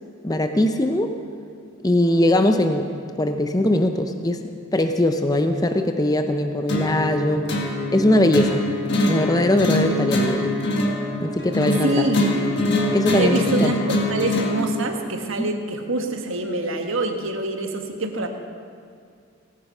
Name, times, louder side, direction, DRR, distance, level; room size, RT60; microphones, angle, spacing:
voice 1, 0.2-1.1 1.8-2.9 3.2-4.4 4.7-7.5 7.9-8.6 9.0-10.5 11.2-12.0 12.9-13.7 15.4-15.5, left 1 dB, 15° left, 7 dB, 0.6 m, -20 dB
sound 1, 6.7-14.7, left 1 dB, 50° left, 1.7 m, -24 dB
voice 2, 11.8-12.3 13.2-18.3, right 2 dB, 65° right, 4 dB, 1.3 m, -25 dB
17.5 x 9.4 x 5.5 m, 2.3 s
head